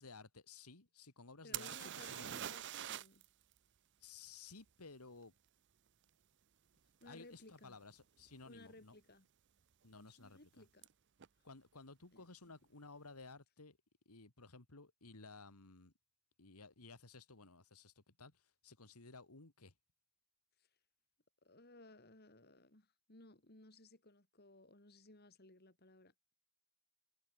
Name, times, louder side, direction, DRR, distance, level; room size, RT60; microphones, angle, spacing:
voice 1, 0.0-2.4 4.0-5.3 7.0-9.0 9.8-10.6 11.4-13.8 14.1-15.9 16.4-19.7, left 3 dB, 90° left, 2.4 m, -56 dB
voice 2, 1.4-3.2 7.0-7.8 8.5-9.3 9.9-10.9 12.1-12.2 21.4-26.1, left 2 dB, 45° left, 3.4 m, -60 dB
sound 1, 1.5-3.2 3.5-3.6 7.0-7.1 7.8-8.8 10.8-10.9 11.2-11.3, right 11 dB, 55° right, 0.6 m, -45 dB
head